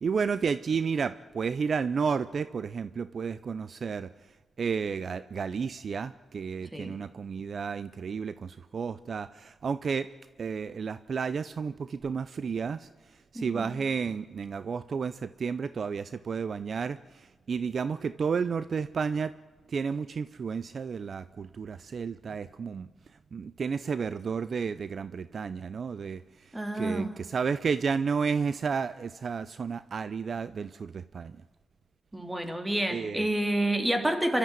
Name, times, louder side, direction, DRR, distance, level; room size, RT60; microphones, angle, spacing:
voice 1, 0.0-4.1 4.6-10.1 10.4-12.9 13.3-19.3 19.7-22.9 23.3-26.2 26.7-31.4 32.9-33.3, right 5 dB, 55° right, 15 dB, 0.6 m, -32 dB
voice 2, 13.3-13.7 26.5-27.2 32.1-34.4, right 1 dB, 15° right, 6 dB, 3.0 m, -29 dB
26.0 x 13.0 x 9.3 m, 1.4 s
cardioid pair, 75°, 0 cm